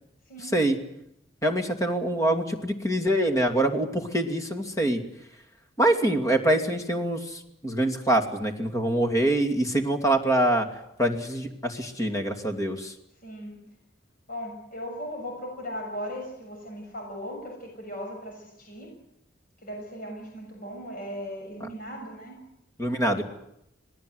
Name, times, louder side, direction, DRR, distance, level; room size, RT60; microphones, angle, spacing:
voice 1, 1.4-5.0 5.8-10.7 11.0-12.9 22.8-23.2, right 1 dB, 15° left, 4 dB, 2.6 m, -25 dB
voice 2, 13.2-13.6 14.3-18.9 19.6-22.4, equal, 50° left, 1 dB, 6.8 m, -37 dB
27.0 x 19.0 x 8.0 m, 0.79 s
head